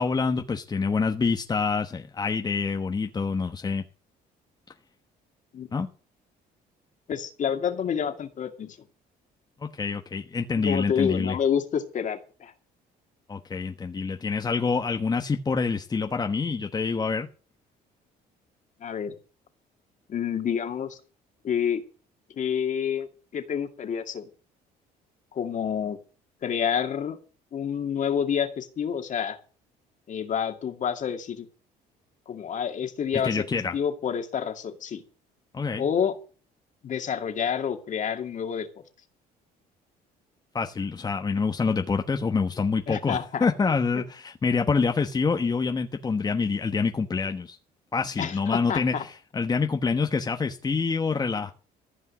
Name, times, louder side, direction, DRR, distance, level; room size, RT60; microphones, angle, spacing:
voice 1, 0.0-3.8 5.7-5.9 9.6-11.3 13.3-17.3 33.2-33.7 35.5-35.8 40.5-47.6 47.9-51.5, left 4 dB, 25° left, 5 dB, 1.1 m, -26 dB
voice 2, 7.1-8.8 10.6-12.5 18.8-19.1 20.1-21.0 21.4-21.8 22.3-24.3 25.3-26.0 26.4-27.2 27.5-29.4 30.1-31.5 32.3-35.0 35.8-36.2 36.8-38.7 42.9-43.5 43.9-44.0 48.2-49.0, left 8 dB, 50° left, 6 dB, 2.3 m, -28 dB
15.0 x 5.5 x 9.7 m, 0.37 s
cardioid pair, 110°, 17 cm